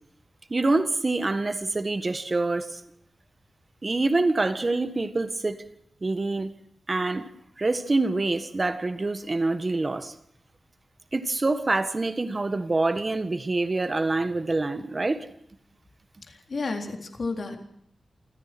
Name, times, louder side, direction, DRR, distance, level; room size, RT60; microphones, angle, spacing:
voice 1, 0.5-2.8 3.8-5.6 6.0-6.5 6.9-7.3 7.6-10.1 11.1-15.3, right 2 dB, 30° right, 1.6 m, -26 dB
voice 2, 16.3-17.6, left 3 dB, 55° left, 3.9 m, -32 dB
28.0 x 15.5 x 6.2 m
wide cardioid pair, 150°, 0 cm